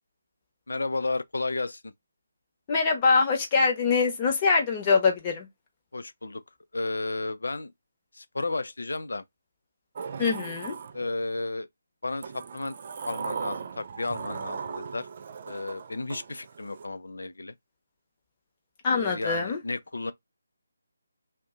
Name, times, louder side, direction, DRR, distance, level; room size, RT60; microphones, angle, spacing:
voice 1, 0.7-1.9 5.9-6.4 6.7-7.7 8.1-9.2 10.9-11.7 12.0-12.7 13.0-15.1 15.5-17.5 18.9-20.1, left 2 dB, 70° left, 0.4 m, -33 dB
voice 2, 2.7-5.5 10.2-10.7 18.8-19.6, left 4 dB, 25° left, 0.9 m, -24 dB
Sliding door, 10.0-11.4 12.2-16.9, right 6 dB, 40° right, 0.3 m, -38 dB
2.6 x 2.1 x 3.6 m
figure-of-eight pair, 150°, 0 cm